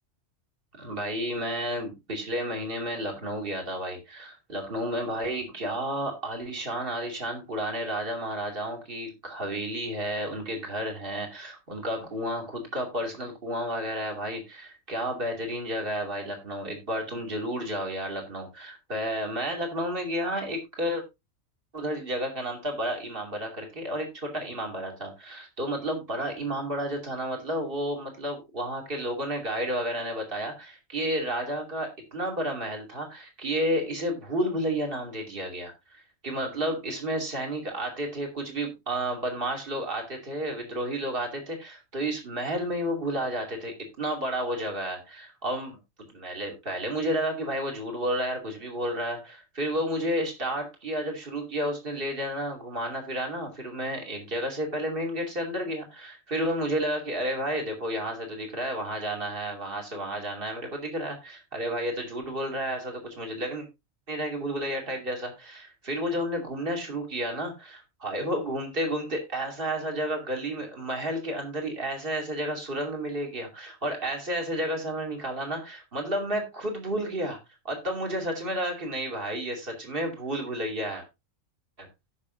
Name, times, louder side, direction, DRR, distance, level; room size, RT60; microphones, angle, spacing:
voice 1, 0.8-21.0 21.7-45.8 46.1-63.7 64.1-77.4 77.6-81.0 81.8-81.9, right 1 dB, 40° right, 2 dB, 2.9 m, -31 dB
16.5 x 6.4 x 2.6 m, 0.23 s
omnidirectional pair, 1.4 m